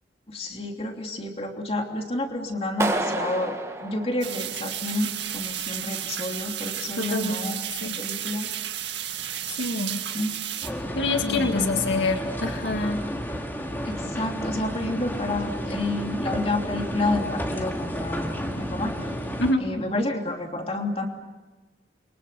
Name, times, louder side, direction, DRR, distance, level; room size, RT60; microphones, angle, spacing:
voice 1, 0.3-7.6 8.0-8.5 10.1-10.3 11.2-11.7 13.8-19.0 19.6-21.1, left 2 dB, 30° left, 2 dB, 3.1 m, -29 dB
Clapping, 2.8-4.8, right 2 dB, 15° right, 1.8 m, -29 dB
sound 1, 4.2-10.7, right 11 dB, 75° right, 2.1 m, -33 dB
voice 2, 7.0-8.0 9.5-10.0 11.0-13.0 19.4-19.6, left 2 dB, 80° left, 4 dB, 2.0 m, -26 dB
sound 2, 10.6-19.5, equal, 10° left, 2.4 m, -31 dB
29.0 x 24.5 x 6.9 m, 1.2 s
head